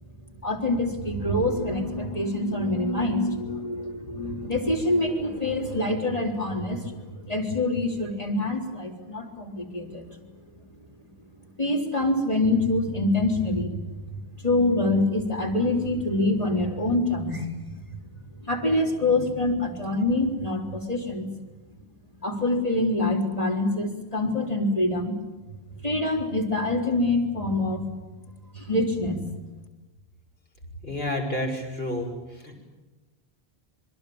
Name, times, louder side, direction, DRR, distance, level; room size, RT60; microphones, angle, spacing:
voice 1, 0.4-10.0 11.6-13.8 14.0-17.7 18.4-21.3 22.2-25.2 25.8-27.9 28.5-29.3, left 2 dB, 35° left, 3 dB, 4.0 m, -25 dB
voice 2, 30.8-32.1 32.4-32.6, left 1 dB, 70° left, 1 dB, 6.4 m, -29 dB
27.5 x 22.5 x 8.8 m, 1.1 s
omnidirectional pair, 1.1 m